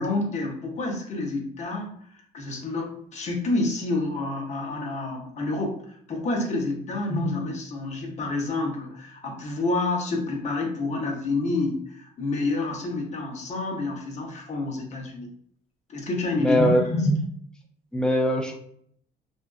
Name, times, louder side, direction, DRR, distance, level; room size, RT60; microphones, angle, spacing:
voice 1, 0.0-1.9 2.3-15.3 15.9-17.2, left 2 dB, 45° left, 1 dB, 0.7 m, -28 dB
voice 2, 16.4-16.8 17.9-18.6, left 1 dB, 5° left, 2 dB, 0.4 m, -21 dB
2.5 x 2.3 x 2.2 m, 0.63 s
cardioid pair, 110°, 17 cm